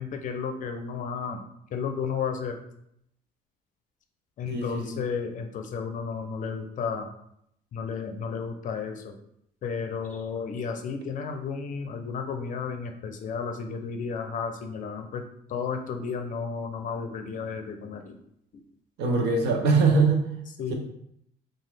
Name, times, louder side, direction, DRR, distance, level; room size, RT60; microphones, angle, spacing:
voice 1, 0.0-1.4 1.7-2.6 4.4-7.1 7.7-9.2 9.6-15.2 15.5-18.2 20.6-20.7, left 5 dB, 50° left, 5 dB, 0.5 m, -33 dB
voice 2, 4.5-4.9 19.0-20.3 20.7-20.8, right 4 dB, 80° right, 2 dB, 0.7 m, -22 dB
2.9 x 2.3 x 3.2 m, 0.73 s
cardioid pair, 110°, 17 cm